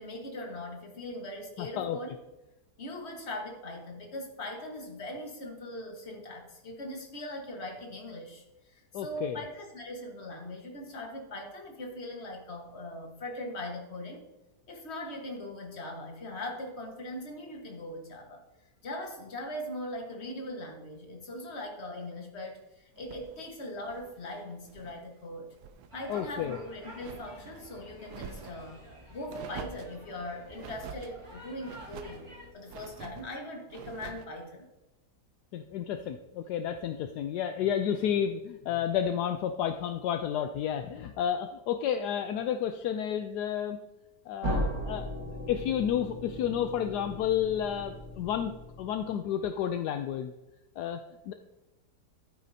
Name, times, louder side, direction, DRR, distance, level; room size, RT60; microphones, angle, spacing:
voice 1, 0.0-2.2 2.8-14.3 14.7-18.4 18.8-25.5 25.9-32.3 32.5-34.7, left 1 dB, 40° left, 1 dB, 1.8 m, -40 dB
voice 2, 1.6-2.0 8.9-9.4 26.1-26.6 35.5-43.8 44.3-45.1 45.5-50.3 50.8-51.3, left 9 dB, 75° left, 7 dB, 1.1 m, -31 dB
sound 1, 23.0-25.0 25.4-25.9 26.3-27.6 28.0-28.7 29.3-30.0 30.6-31.1 31.6-32.2 32.7-33.3 33.7-34.3, right 8 dB, 75° right, 1.2 m, -46 dB
sound 2, 25.9-32.5, right 1 dB, 20° right, 3.4 m, -49 dB
sound 3, 44.4-49.2, equal, 55° right, 2.3 m, -37 dB
12.0 x 9.3 x 2.8 m, 1.0 s
omnidirectional pair, 1.8 m